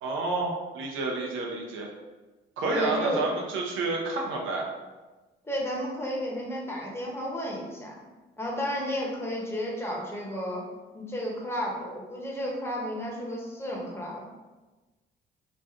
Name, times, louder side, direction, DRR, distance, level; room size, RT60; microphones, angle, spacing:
voice 1, 0.0-1.9 2.6-4.7, right 3 dB, 85° right, -1 dB, 0.8 m, -29 dB
voice 2, 2.7-3.2 5.4-7.9 8.4-10.6 10.9-14.2, equal, 10° left, -3 dB, 1.0 m, -32 dB
3.1 x 2.5 x 3.6 m, 1.2 s
cardioid pair, 90°, 20 cm